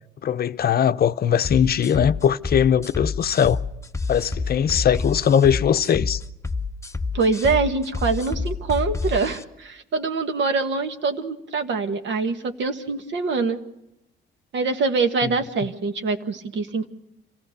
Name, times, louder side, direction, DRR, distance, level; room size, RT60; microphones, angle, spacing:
voice 1, 0.2-3.6 4.1-6.2 15.2-15.4, left 8 dB, 50° left, 0.7 m, -20 dB
sound 1, 1.4-9.4, left 4 dB, 15° left, 0.8 m, -28 dB
voice 2, 7.1-13.6 14.5-16.9, right 4 dB, 70° right, 1.7 m, -24 dB
27.0 x 16.0 x 6.7 m
cardioid pair, 90°, 20 cm